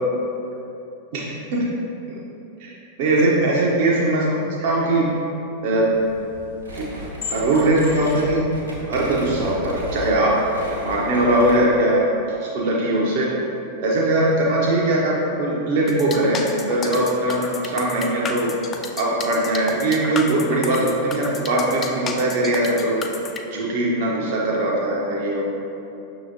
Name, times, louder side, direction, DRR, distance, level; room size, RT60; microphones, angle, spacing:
voice 1, 1.1-1.7 2.6-5.1 5.6-6.0 6.7-6.8 7.3-10.4 10.8-13.3 13.8-18.5 19.0-23.1 23.5-25.4, right 1 dB, 50° right, -4 dB, 0.5 m, -21 dB
sound 1, 5.9-10.2, left 4 dB, 60° left, 0.7 m, -39 dB
sound 2, 6.6-11.8, equal, 80° right, 0.9 m, -33 dB
sound 3, 15.9-23.4, left 5 dB, 25° left, 0.3 m, -32 dB
6.0 x 2.8 x 2.6 m, 2.9 s
figure-of-eight pair, 90°, 0 cm